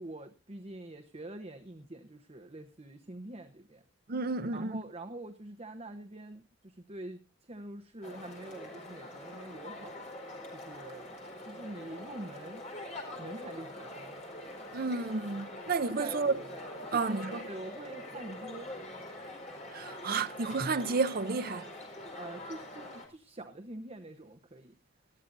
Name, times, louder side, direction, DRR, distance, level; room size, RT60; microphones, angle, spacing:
voice 1, 0.0-3.8 4.5-7.2 7.5-10.0 10.5-11.1 11.4-12.6 13.2-14.4 15.9-16.2 16.9-17.0 17.4-18.7 22.1-24.7, right 1 dB, 35° right, 1.0 m, -45 dB
voice 2, 4.1-4.8 14.7-16.3 16.9-17.4 19.7-21.7, right 4 dB, 50° right, 0.7 m, -31 dB
sound 1, 8.0-23.1, left 1 dB, 40° left, 4.7 m, -44 dB
19.5 x 14.0 x 2.6 m
head